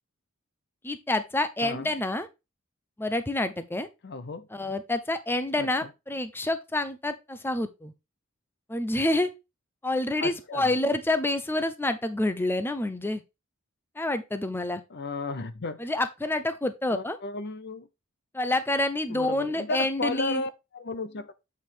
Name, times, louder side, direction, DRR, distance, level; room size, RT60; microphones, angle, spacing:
voice 1, 0.8-2.3 3.0-3.9 4.5-7.9 8.7-9.3 9.8-13.2 14.0-14.8 15.8-17.2 18.3-20.4, left 2 dB, 10° left, 0.7 m, -28 dB
voice 2, 4.0-4.5 5.6-5.9 10.2-10.7 14.9-15.9 16.9-17.9 19.1-21.3, left 3 dB, 50° left, 0.6 m, -34 dB
8.3 x 4.7 x 3.5 m
head